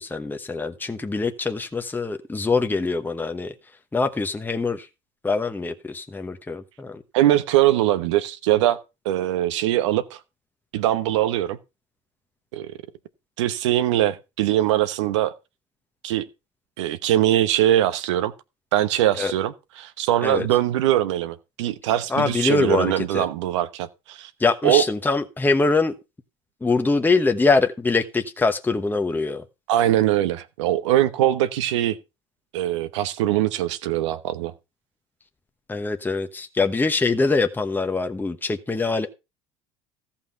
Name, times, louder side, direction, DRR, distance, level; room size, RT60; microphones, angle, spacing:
voice 1, 0.0-3.5 3.9-4.9 5.2-7.0 19.1-19.3 20.2-20.5 22.1-23.2 24.4-26.0 26.6-29.4 35.7-39.1, left 3 dB, 10° left, 1.1 m, -23 dB
voice 2, 7.1-8.8 9.0-10.2 10.7-11.6 12.5-12.7 13.4-15.3 16.0-16.2 16.8-18.3 18.7-24.3 24.6-24.8 29.7-32.0 32.5-34.5, right 13 dB, 85° right, 1.0 m, -22 dB
14.0 x 5.7 x 5.7 m
hypercardioid pair, 80°, 15 cm